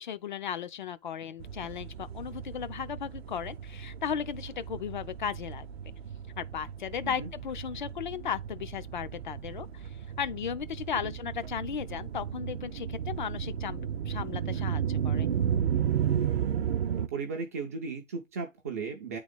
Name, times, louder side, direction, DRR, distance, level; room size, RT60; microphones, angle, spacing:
voice 1, 0.0-5.7 6.4-9.9 10.2-15.3, left 8 dB, 40° left, 0.6 m, -36 dB
sound 1, 1.4-17.1, right 9 dB, 55° right, 0.7 m, -34 dB
voice 2, 17.0-19.2, right 5 dB, 15° right, 0.4 m, -36 dB
9.1 x 3.9 x 3.5 m
figure-of-eight pair, 125°, 38 cm